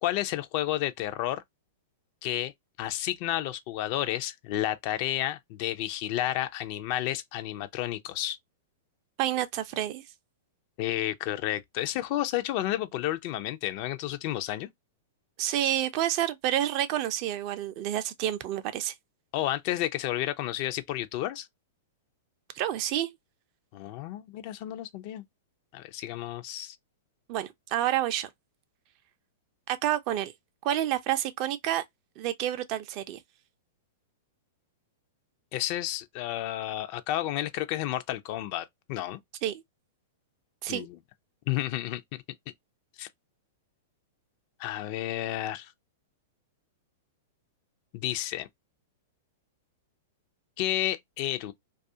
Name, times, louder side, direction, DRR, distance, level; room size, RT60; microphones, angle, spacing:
voice 1, 0.0-1.4 2.2-2.5 2.8-8.4 10.8-14.7 19.3-21.5 23.7-25.2 25.7-26.8 35.5-39.2 40.7-41.0 41.5-42.2 43.0-43.1 44.6-45.7 47.9-48.5 50.6-51.5, left 13 dB, 50° left, 0.4 m, -31 dB
voice 2, 9.2-10.0 15.4-18.9 22.5-23.1 27.3-28.3 29.7-30.3 30.6-31.8 32.2-33.2 39.4-39.6 40.6-40.9, right 12 dB, 45° right, 0.4 m, -29 dB
2.3 x 2.3 x 2.6 m
hypercardioid pair, 115°, 0 cm